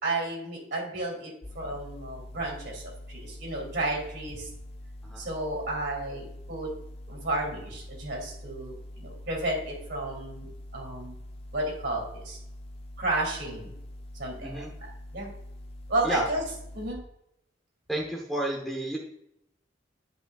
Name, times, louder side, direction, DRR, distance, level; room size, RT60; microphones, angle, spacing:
voice 1, 0.0-4.5 5.2-6.7 7.1-11.1 11.5-12.4 13.0-13.7 14.2-14.6 15.1-15.3 15.9-16.4 16.7-17.0, right 2 dB, 55° right, -1 dB, 2.8 m, -32 dB
sound 1, 1.4-16.9, left 1 dB, 30° left, 0.7 m, -44 dB
voice 2, 17.9-19.0, right 1 dB, ahead, -1 dB, 0.9 m, -31 dB
11.5 x 5.2 x 2.4 m, 0.78 s
head